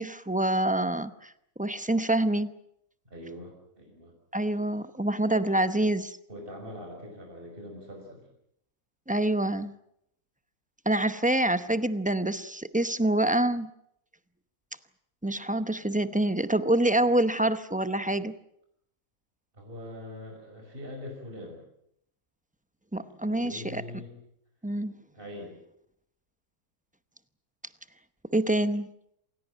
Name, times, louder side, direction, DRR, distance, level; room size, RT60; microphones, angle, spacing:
voice 1, 0.0-1.3 1.6-2.5 4.3-6.2 9.1-9.7 10.9-13.7 15.2-18.3 22.9-23.8 24.6-25.0 28.3-28.9, right 1 dB, 10° right, 12 dB, 0.5 m, -26 dB
voice 2, 3.0-4.1 6.3-8.3 19.5-21.6 23.2-24.1 25.1-25.6, left 1 dB, 35° right, 1 dB, 6.0 m, -42 dB
27.5 x 16.5 x 9.0 m, 0.76 s
omnidirectional pair, 1.6 m